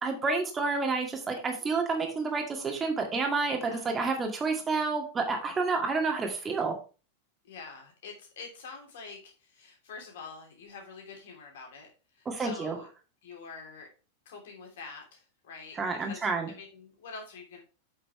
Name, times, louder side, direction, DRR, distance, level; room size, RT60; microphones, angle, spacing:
voice 1, 0.0-6.7 12.3-12.8 15.7-16.5, right 4 dB, 20° right, 2 dB, 2.0 m, -29 dB
voice 2, 3.6-4.0 7.4-11.9 12.1-12.9 13.2-13.9 14.2-17.6, left 4 dB, 55° left, 2 dB, 3.1 m, -46 dB
8.2 x 6.6 x 3.4 m, 0.34 s
figure-of-eight pair, 90°, 0 cm